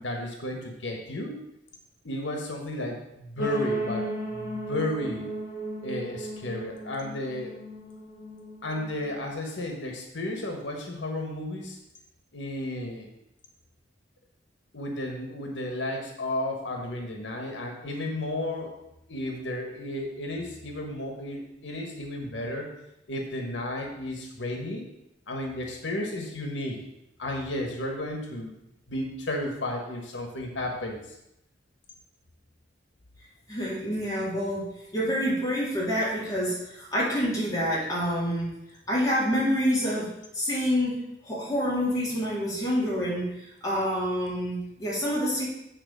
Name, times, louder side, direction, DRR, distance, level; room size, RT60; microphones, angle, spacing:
voice 1, 0.0-1.3 2.0-5.3 5.8-7.5 8.6-11.8 12.3-13.1 14.7-18.7 19.1-22.7 23.1-24.9 25.3-26.8 27.2-28.5 28.9-31.1, left 1 dB, 90° left, 2 dB, 1.4 m, -33 dB
sound 1, 3.4-9.3, right 1 dB, 45° left, 2.9 m, -35 dB
voice 2, 33.5-34.7 34.9-38.5 38.9-43.3 43.6-45.5, equal, 20° left, -7 dB, 3.5 m, -27 dB
8.9 x 4.2 x 6.7 m, 0.86 s
head